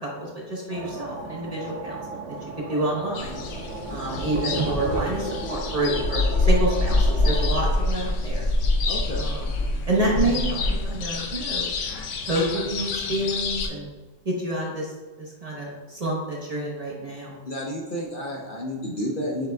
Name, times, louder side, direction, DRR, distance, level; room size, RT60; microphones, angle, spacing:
voice 1, 0.0-3.4 3.9-8.5 9.2-9.5 9.9-11.7 12.3-13.9 14.2-14.9 15.2-17.4, right 1 dB, 35° right, -4 dB, 0.8 m, -28 dB
sound 1, 0.7-7.5, right 3 dB, 80° right, 1.0 m, -36 dB
sound 2, 3.1-13.7, left 2 dB, 80° left, 1.0 m, -26 dB
sound 3, 3.7-6.1 6.4-8.8, right 2 dB, 60° right, 0.3 m, -32 dB
voice 2, 8.9-9.2 17.5-19.5, equal, 55° left, -2 dB, 0.7 m, -30 dB
6.6 x 3.6 x 2.2 m, 1.3 s
omnidirectional pair, 1.3 m